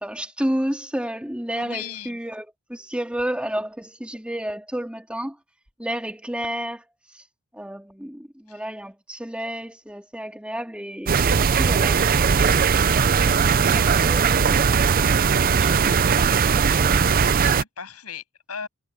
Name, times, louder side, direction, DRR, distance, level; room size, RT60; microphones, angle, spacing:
voice 1, 0.0-5.4 5.8-6.9 7.1-7.2 7.5-13.0 13.3-14.7, right 1 dB, 5° right, 2.4 m, -31 dB
voice 2, 1.5-2.2 8.5-8.6 17.4-18.7, left 7 dB, 80° left, 7.8 m, -36 dB
sound 1, 11.1-17.6, right 6 dB, 40° right, 0.5 m, -19 dB
head